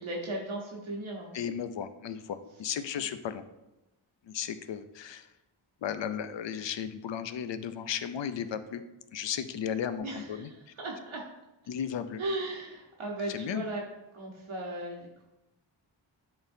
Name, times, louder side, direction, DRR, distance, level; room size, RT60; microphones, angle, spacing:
voice 1, 0.0-1.3 10.0-11.2 12.2-13.8 14.1-15.2, right 1 dB, 85° right, -2 dB, 1.2 m, -36 dB
voice 2, 1.3-3.4 4.3-5.3 5.8-8.8 9.1-10.5 11.7-12.2 13.3-13.6, left 8 dB, 65° left, 11 dB, 0.6 m, -35 dB
11.0 x 3.9 x 2.7 m, 0.98 s
wide cardioid pair, 135°, 47 cm